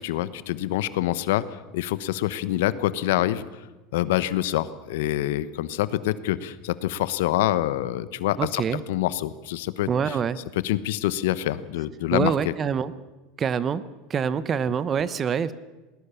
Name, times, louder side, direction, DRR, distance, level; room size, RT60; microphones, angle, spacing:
voice 1, 0.0-1.4 1.7-3.5 3.9-10.2 10.6-12.5, left 14 dB, 85° left, 16 dB, 1.0 m, -26 dB
voice 2, 8.4-8.8 9.9-10.4 12.1-12.9 13.4-13.8 14.1-15.5, right 7 dB, 25° right, 17 dB, 0.8 m, -25 dB
20.0 x 19.0 x 6.9 m, 1.2 s
supercardioid pair, 150°, 0 cm